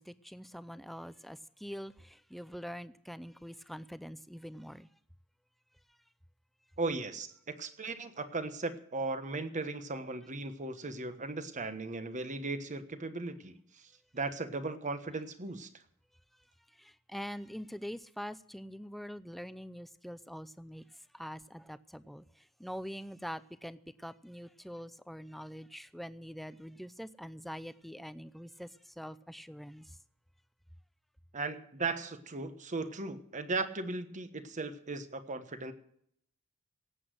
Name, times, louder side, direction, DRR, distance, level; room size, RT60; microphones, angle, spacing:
voice 1, 0.0-4.9 16.8-20.8 21.1-30.0, equal, ahead, 0.4 m, -44 dB
voice 2, 6.8-7.3 7.6-13.5 14.1-15.7 31.3-35.7, right 3 dB, 35° right, 1.2 m, -37 dB
18.0 x 8.3 x 6.3 m
head